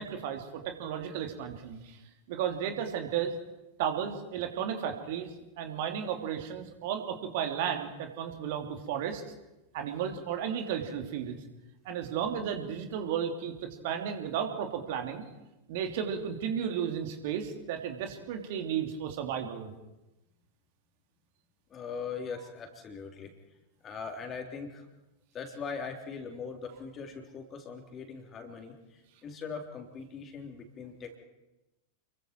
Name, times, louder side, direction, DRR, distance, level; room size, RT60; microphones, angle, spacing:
voice 1, 0.0-2.0 2.3-3.3 3.8-5.3 5.6-9.2 9.7-11.4 11.8-15.2 15.7-19.7, right 8 dB, 50° right, 4 dB, 2.9 m, -33 dB
voice 2, 21.7-23.3 23.8-24.9 25.3-31.2, left 5 dB, 25° left, 4 dB, 3.7 m, -41 dB
30.0 x 23.0 x 4.6 m, 0.99 s
figure-of-eight pair, 90°, 0 cm